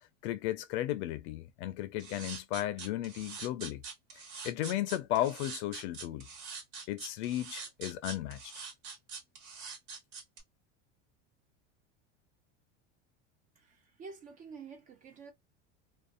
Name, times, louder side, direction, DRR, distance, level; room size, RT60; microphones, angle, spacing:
voice 1, 0.2-3.8 4.4-6.3 6.9-8.5, left 13 dB, 70° left, 0.5 m, -34 dB
sound 1, 2.0-10.4, right 5 dB, 50° right, 1.2 m, -44 dB
voice 2, 13.6-15.3, right 5 dB, 25° right, 0.4 m, -49 dB
2.5 x 2.0 x 2.5 m
supercardioid pair, 150°, 35 cm